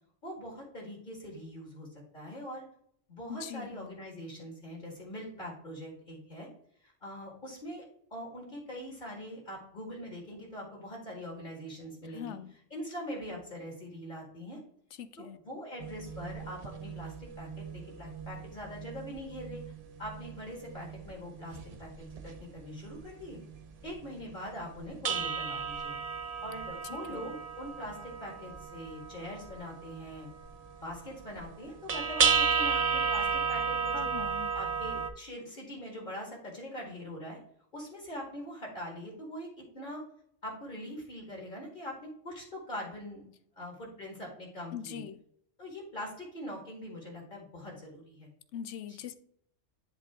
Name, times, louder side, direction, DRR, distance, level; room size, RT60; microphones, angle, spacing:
voice 1, 0.2-2.7 3.1-6.5 6.8-7.8 8.1-12.4 12.7-14.6 15.2-19.6 20.0-23.4 23.8-26.0 26.4-30.3 30.8-34.2 34.5-37.4 37.7-40.0 40.4-43.3 43.6-45.0 45.6-48.3 48.9-49.0, equal, 40° left, 2.0 m, -43 dB
voice 2, 3.3-3.9 12.0-12.5 15.0-15.4 26.9-27.3 33.9-34.5 44.7-45.2 48.5-49.1, left 9 dB, 75° left, 0.9 m, -42 dB
sound 1, 15.8-23.1 23.3-23.9 24.1-24.2 24.6-35.1, right 6 dB, 40° right, 0.6 m, -34 dB
10.0 x 3.8 x 3.6 m
omnidirectional pair, 1.2 m